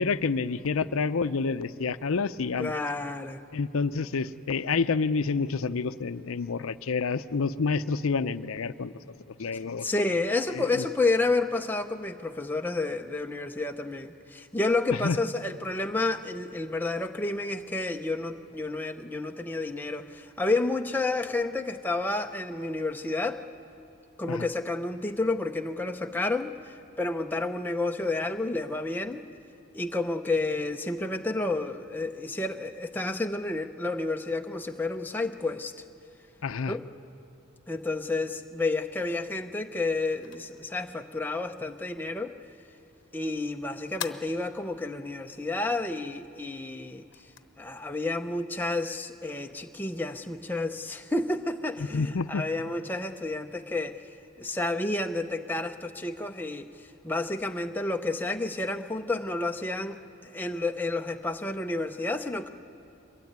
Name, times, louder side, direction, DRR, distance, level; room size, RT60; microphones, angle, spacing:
voice 1, 0.0-2.7 3.5-8.9 9.3-9.9 10.5-10.9 14.9-15.2 24.3-24.5 36.4-36.8 51.8-52.4, left 4 dB, 75° left, 13 dB, 0.6 m, -28 dB
voice 2, 2.6-3.4 9.8-23.4 24.2-26.5 27.0-29.2 29.7-35.7 36.7-36.8 37.7-42.4 43.1-47.1 47.6-54.0 54.4-56.7 57.0-62.5, left 2 dB, 10° left, 5 dB, 0.6 m, -30 dB
sound 1, 39.6-49.4, left 8 dB, 55° left, 0.9 m, -48 dB
23.0 x 20.5 x 9.4 m, 2.7 s
head